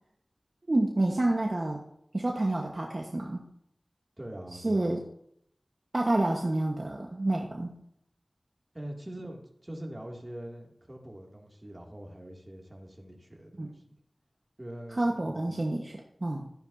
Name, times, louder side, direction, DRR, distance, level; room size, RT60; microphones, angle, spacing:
voice 1, 0.7-1.8 2.1-3.4 4.5-5.0 5.9-7.7 13.6-13.7 14.9-16.5, right 2 dB, 50° right, 0 dB, 1.2 m, -28 dB
voice 2, 4.2-5.0 8.7-13.9 14.6-15.5, right 1 dB, 30° right, 0 dB, 2.4 m, -43 dB
13.0 x 10.5 x 2.7 m, 0.73 s
wide cardioid pair, 50°, 0 cm